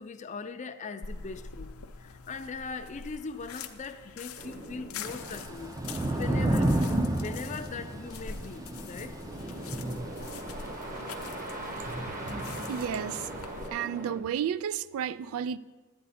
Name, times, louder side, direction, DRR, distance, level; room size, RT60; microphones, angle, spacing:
voice 1, 0.0-1.7 2.0-9.2, left 4 dB, 35° left, 0.4 m, -40 dB
sound 1, 1.0-13.7, left 5 dB, 85° left, 0.6 m, -45 dB
sound 2, 4.4-14.2, right 1 dB, 40° right, 1.1 m, -42 dB
Thunder / Rain, 5.0-13.4, right 1 dB, 15° right, 0.5 m, -32 dB
voice 2, 12.7-13.3 13.7-15.6, right 8 dB, 80° right, 0.3 m, -32 dB
10.5 x 8.6 x 4.2 m
head